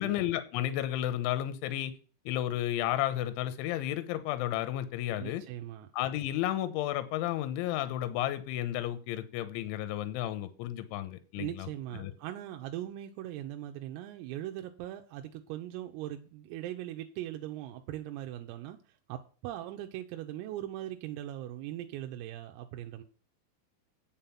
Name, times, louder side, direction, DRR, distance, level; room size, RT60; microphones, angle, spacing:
voice 1, 0.0-1.9 2.3-5.4 5.9-11.7 12.0-12.1, left 13 dB, 75° left, 3.1 m, -32 dB
voice 2, 5.2-5.9 11.4-23.0, right 13 dB, 85° right, 3.5 m, -40 dB
9.0 x 7.5 x 5.8 m
omnidirectional pair, 6.0 m